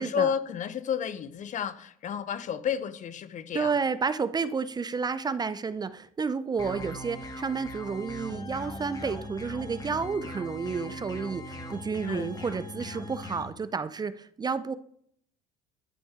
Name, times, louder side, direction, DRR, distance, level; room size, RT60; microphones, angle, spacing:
voice 1, 0.0-3.7 12.1-12.3, left 8 dB, 45° left, 0.8 m, -31 dB
voice 2, 3.5-14.7, right 5 dB, 25° right, 0.6 m, -31 dB
sound 1, 6.6-13.4, left 1 dB, 20° left, 1.8 m, -40 dB
11.5 x 6.1 x 3.7 m
supercardioid pair, 80°, 18 cm